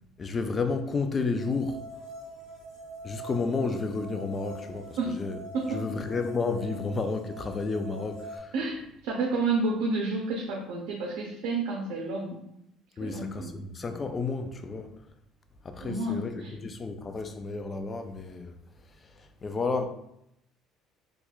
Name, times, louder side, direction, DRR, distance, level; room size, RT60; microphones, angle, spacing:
voice 1, 0.2-1.8 3.0-5.4 5.7-8.5 13.0-14.9 15.6-18.5 19.0-19.8, left 4 dB, 25° left, 0.3 m, -31 dB
sound 1, 1.4-8.4, right 1 dB, 70° left, 1.1 m, -44 dB
voice 2, 5.5-5.8 8.5-12.4 13.0-13.6 15.8-16.5, right 3 dB, 85° right, 0.6 m, -30 dB
4.3 x 2.3 x 2.3 m
cardioid pair, 125°, 0 cm